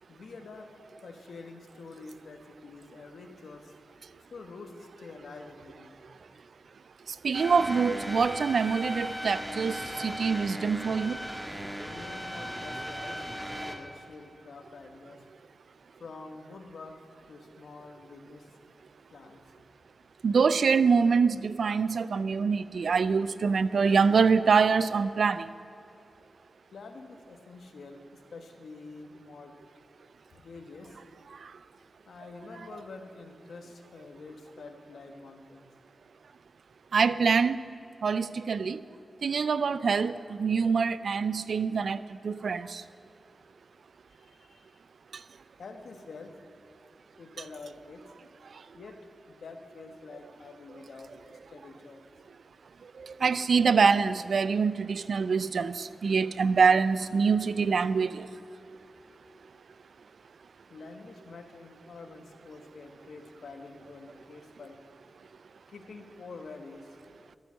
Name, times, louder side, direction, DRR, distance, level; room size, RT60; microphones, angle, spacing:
voice 1, 0.1-0.7 1.0-3.7 4.3-6.0 11.9-15.3 16.0-17.0 17.3-18.5 19.1-19.4 26.7-29.5 30.3-31.0 32.0-35.6 44.1-44.8 45.6-46.4 47.2-48.0 48.7-49.0 49.3-52.0 60.7-64.8 65.7-67.0, left 3 dB, 80° left, 5 dB, 1.4 m, -47 dB
voice 2, 7.2-11.2 20.2-25.5 36.9-37.6 38.0-38.8 39.2-42.8 53.0-58.3, right 5 dB, 75° right, 15 dB, 0.4 m, -25 dB
sound 1, 7.3-13.8, equal, 10° right, 1.5 m, -37 dB
13.0 x 9.1 x 7.5 m, 2.7 s
wide cardioid pair, 75°, 0 cm